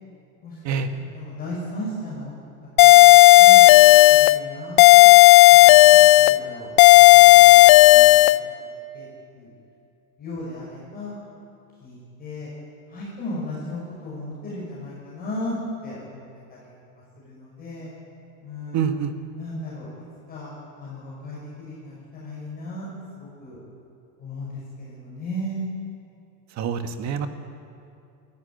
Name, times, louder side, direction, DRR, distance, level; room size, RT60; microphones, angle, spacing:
voice 1, 1.1-2.4 2.8-3.0 3.4-3.7 4.1-5.1 5.5-8.3 8.9-9.1 9.3-9.5 10.2-11.2 11.8-12.5 12.9-15.6 15.8-16.2 16.5-16.7 17.2-17.9 18.4-18.9 19.4-19.9 20.3-22.9 23.2-23.6 24.2-25.7, left 1 dB, 20° left, -6 dB, 5.9 m, -36 dB
sound 1, 2.8-4.4 4.8-6.4 6.8-8.4, left 21 dB, 65° left, 0.7 m, -10 dB
voice 2, 18.7-19.1 26.5-27.3, right 7 dB, 35° right, 8 dB, 1.5 m, -26 dB
22.0 x 14.5 x 9.4 m, 2.6 s
supercardioid pair, 150°, 45 cm